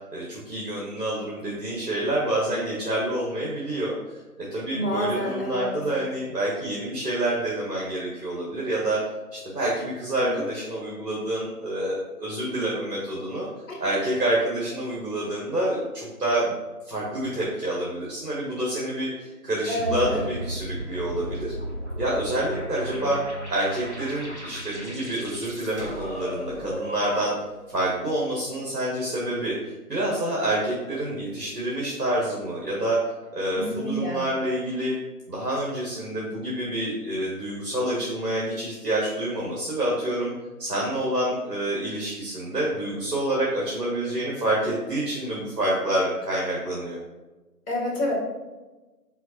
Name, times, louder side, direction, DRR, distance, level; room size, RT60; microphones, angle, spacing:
voice 1, 0.1-3.9 4.4-9.0 9.3-13.5 13.8-16.5 16.8-21.5 22.0-23.2 23.5-27.3 27.7-33.0 33.3-34.9 35.3-40.3 40.6-47.0, right 1 dB, 80° right, -4 dB, 1.3 m, -27 dB
voice 2, 4.7-5.7 10.2-10.5 13.7-13.8 19.7-20.2 22.9-23.1 33.5-34.2 47.7-48.1, equal, 60° left, -2 dB, 1.5 m, -28 dB
sound 1, 19.8-27.6, equal, 50° right, 0.6 m, -35 dB
4.4 x 4.1 x 2.8 m, 1.2 s
figure-of-eight pair, 180°, 47 cm